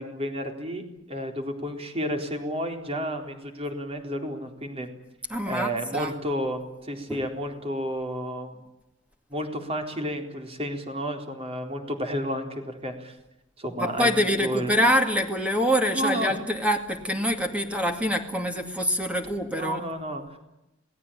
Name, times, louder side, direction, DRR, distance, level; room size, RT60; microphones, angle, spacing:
voice 1, 0.0-4.9 5.4-8.6 9.3-13.2 13.6-14.1 14.4-14.7 15.9-16.3 19.6-20.4, equal, 30° right, 4 dB, 4.1 m, -31 dB
voice 2, 5.3-6.1 7.1-7.3 13.8-19.8, equal, 5° right, 4 dB, 2.3 m, -25 dB
27.0 x 18.5 x 8.9 m, 0.92 s
head